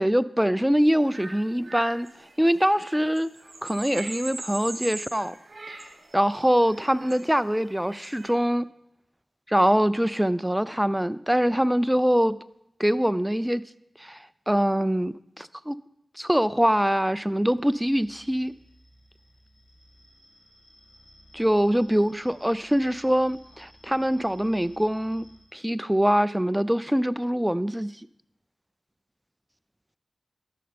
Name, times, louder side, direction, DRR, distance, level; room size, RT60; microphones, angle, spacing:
voice 1, 0.0-2.1 2.4-3.3 3.6-5.3 6.1-8.7 9.5-12.4 12.8-13.6 14.0-14.2 14.5-15.8 16.2-18.5 21.3-25.3 25.5-27.9, equal, 5° right, 15 dB, 0.3 m, -23 dB
sound 1, 0.9-8.3, right 2 dB, 50° right, 1.5 m, -41 dB
sound 2, 17.5-25.4, equal, 70° left, 2.7 m, -56 dB
12.5 x 6.6 x 3.4 m, 0.81 s
cardioid pair, 65°, 0 cm